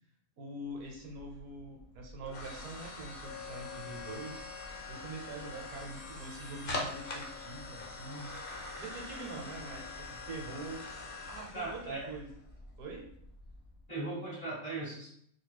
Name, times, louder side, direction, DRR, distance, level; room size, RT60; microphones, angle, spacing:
voice 1, 0.4-4.5 4.9-8.3 8.8-10.9 11.3-12.3 12.8-13.1, right 2 dB, 65° right, 0 dB, 1.1 m, -44 dB
sound 1, 0.8-13.8, left 3 dB, 55° left, 0.6 m, -44 dB
voice 2, 11.5-12.1 13.9-15.1, right 2 dB, 30° left, -7 dB, 1.0 m, -38 dB
4.2 x 2.9 x 2.2 m, 0.67 s
omnidirectional pair, 1.8 m